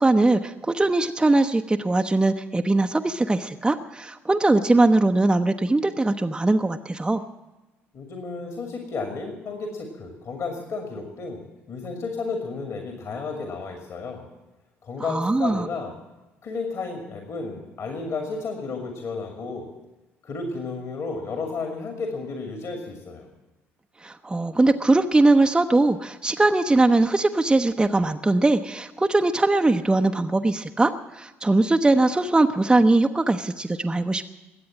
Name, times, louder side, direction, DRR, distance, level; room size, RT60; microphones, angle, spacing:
voice 1, 0.0-7.2 15.0-15.7 24.0-34.2, right 2 dB, 10° right, 5 dB, 0.7 m, -21 dB
voice 2, 7.9-11.4 11.7-14.3 14.8-15.9 16.4-19.7 20.2-23.3, left 4 dB, 45° left, 3 dB, 2.4 m, -32 dB
22.0 x 8.7 x 7.2 m, 1.1 s
figure-of-eight pair, 50°, 7 cm